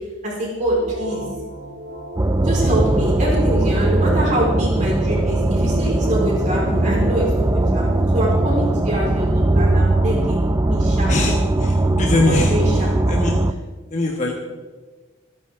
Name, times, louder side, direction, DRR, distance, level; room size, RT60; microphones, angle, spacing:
voice 1, 0.2-1.2 2.4-11.4 12.2-12.8 13.2-13.3, equal, 40° right, -4 dB, 4.5 m, -24 dB
sound 1, 0.6-12.9, right 1 dB, 65° right, 3.3 m, -33 dB
sound 2, 2.2-13.5, right 2 dB, 15° right, 0.4 m, -19 dB
voice 2, 11.6-13.3 13.9-14.3, left 2 dB, 35° left, -1 dB, 1.4 m, -22 dB
26.5 x 9.4 x 3.7 m, 1.3 s
head